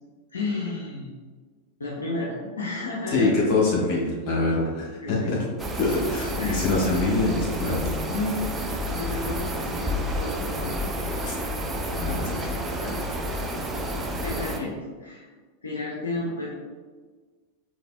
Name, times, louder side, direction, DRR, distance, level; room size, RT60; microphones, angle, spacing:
voice 1, 0.3-1.1 1.8-3.4 5.0-5.3 6.4-6.6 7.9-8.4 8.8-11.0 12.7-13.0 13.6-13.9 14.2-15.3 15.6-16.5, left 2 dB, 75° left, -4 dB, 0.5 m, -32 dB
voice 2, 3.1-5.4 5.8-7.9 11.2-11.3 11.9-12.5, left 3 dB, 40° left, -4 dB, 1.2 m, -24 dB
sound 1, 5.6-14.6, equal, 15° right, 0.4 m, -30 dB
4.0 x 2.9 x 2.2 m, 1.4 s
figure-of-eight pair, 90°, 0 cm